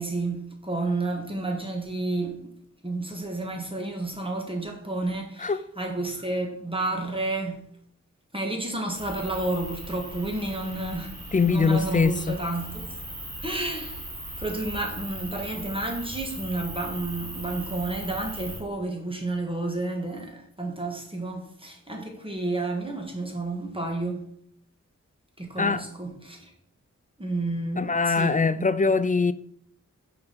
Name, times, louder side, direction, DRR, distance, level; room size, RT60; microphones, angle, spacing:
voice 1, 0.0-2.4 2.8-7.6 8.3-11.1 11.4-12.9 13.4-14.1 14.4-24.3 25.4-26.5 27.2-28.7, right 2 dB, 15° right, 1.5 m, -31 dB
sound 1, 8.9-18.6, right 1 dB, 50° right, 2.8 m, -38 dB
voice 2, 11.3-12.4 25.6-25.8 27.8-29.3, left 4 dB, 25° left, 0.4 m, -22 dB
5.7 x 4.4 x 5.2 m
cardioid pair, 50°, 30 cm